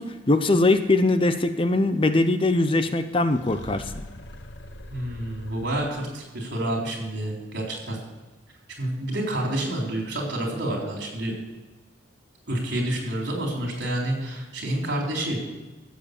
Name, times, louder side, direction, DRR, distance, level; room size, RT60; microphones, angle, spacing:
voice 1, 0.0-3.9, left 2 dB, 30° left, 10 dB, 0.6 m, -21 dB
sound 1, 3.3-6.3, left 1 dB, 65° left, 1.1 m, -42 dB
voice 2, 4.9-8.0 8.8-11.3 12.5-15.4, right 1 dB, 65° right, -1 dB, 4.0 m, -28 dB
15.0 x 7.6 x 6.9 m, 1.1 s
head